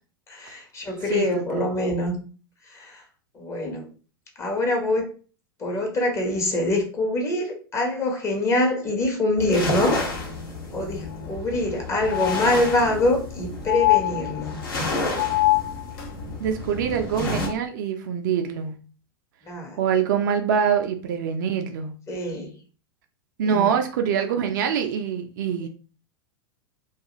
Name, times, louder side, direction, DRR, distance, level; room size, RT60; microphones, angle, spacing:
voice 1, 0.3-2.1 2.7-3.0 3.3-3.9 4.4-5.1 5.6-10.0 10.7-14.6 19.5-19.8 22.1-22.5 23.4-23.7 25.6-25.7, left 1 dB, 25° left, 2 dB, 0.9 m, -24 dB
voice 2, 1.1-1.7 16.4-18.7 19.8-21.9 23.4-25.7, right 7 dB, 55° right, 5 dB, 0.4 m, -24 dB
sound 1, 9.4-17.5, left 2 dB, 70° left, 1.0 m, -31 dB
sound 2, 11.1-11.2 11.5-11.6 12.0-13.0 13.7-14.7 15.2-16.1 17.4-17.5, left 21 dB, 50° left, 0.5 m, -24 dB
2.3 x 2.3 x 2.8 m, 0.38 s
figure-of-eight pair, 90°, 12 cm